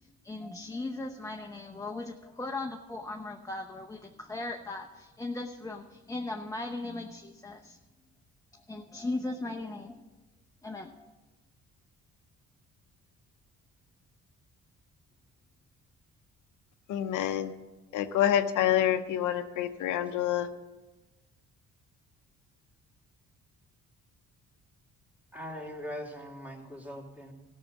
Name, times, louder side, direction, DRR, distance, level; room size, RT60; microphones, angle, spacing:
voice 1, 0.2-7.8 8.7-10.0 10.6-11.0, left 2 dB, 10° left, 1 dB, 0.8 m, -38 dB
voice 2, 16.9-17.5 17.9-20.5, left 11 dB, 85° left, 8 dB, 0.8 m, -27 dB
voice 3, 25.3-27.3, equal, 5° right, -2 dB, 2.7 m, -41 dB
14.0 x 6.4 x 7.3 m, 1.2 s
cardioid pair, 90°, 30 cm